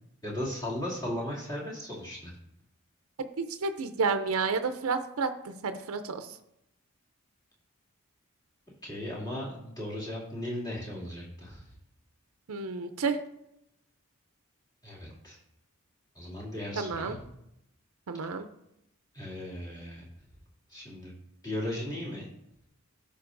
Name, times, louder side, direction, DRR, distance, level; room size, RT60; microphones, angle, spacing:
voice 1, 0.2-2.4 8.8-11.7 14.8-15.4 16.1-17.2 18.2-18.3 19.1-20.0 20.7-21.1 21.4-22.3, left 1 dB, 15° left, -6 dB, 2.4 m, -36 dB
voice 2, 3.2-6.4 12.5-13.2 16.8-17.2 18.1-18.5, right 4 dB, 75° right, 8 dB, 0.5 m, -31 dB
13.5 x 5.4 x 2.6 m, 0.80 s
head